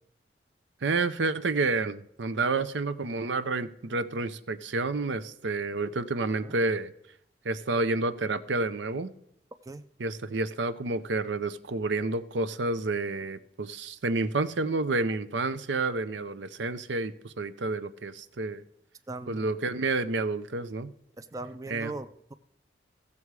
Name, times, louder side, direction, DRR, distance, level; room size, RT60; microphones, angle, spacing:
voice 1, 0.8-6.9 7.4-9.1 10.0-18.6 19.3-20.9 21.7-21.9, right 3 dB, 75° right, 13 dB, 0.6 m, -29 dB
voice 2, 19.1-19.5 21.2-22.3, right 2 dB, 20° right, 12 dB, 0.4 m, -39 dB
16.0 x 6.9 x 4.8 m, 0.74 s
head